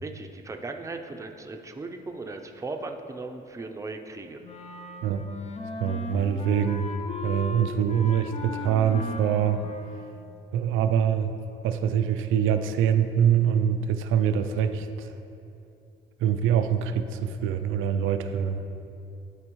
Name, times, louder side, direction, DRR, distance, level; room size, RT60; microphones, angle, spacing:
voice 1, 0.0-4.4, right 3 dB, 15° right, 4 dB, 0.5 m, -37 dB
Wind instrument woodwind instrument, 4.4-10.3, left 3 dB, 35° left, 0.5 m, -37 dB
voice 2, 5.8-6.9 7.2-9.6 10.5-11.3 11.6-15.1 16.2-18.6, right 8 dB, 90° right, 8 dB, 0.4 m, -24 dB
12.0 x 4.3 x 3.1 m, 2.7 s
cardioid pair, 90°, 20 cm